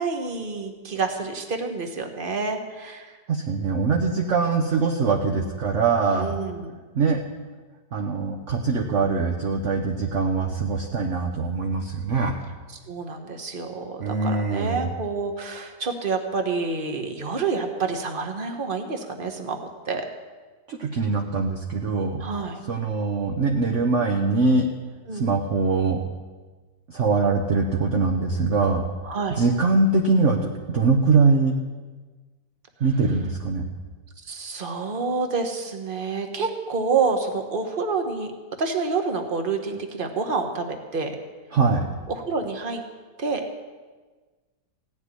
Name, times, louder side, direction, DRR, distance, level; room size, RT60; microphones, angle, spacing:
voice 1, 0.0-3.2 6.1-6.8 12.9-19.6 19.8-20.1 22.2-22.6 25.1-25.3 29.0-29.4 34.2-38.3 38.6-41.2 42.1-42.8 43.2-43.4, right 4 dB, 30° right, 5 dB, 1.4 m, -28 dB
voice 2, 3.3-6.4 6.9-7.2 7.9-12.3 14.0-14.9 20.7-22.2 22.7-24.7 25.1-26.0 26.9-28.8 29.4-31.6 32.8-33.6 41.5-41.8, right 4 dB, 50° right, 2 dB, 1.2 m, -22 dB
16.5 x 7.3 x 9.8 m, 1.4 s
omnidirectional pair, 1.9 m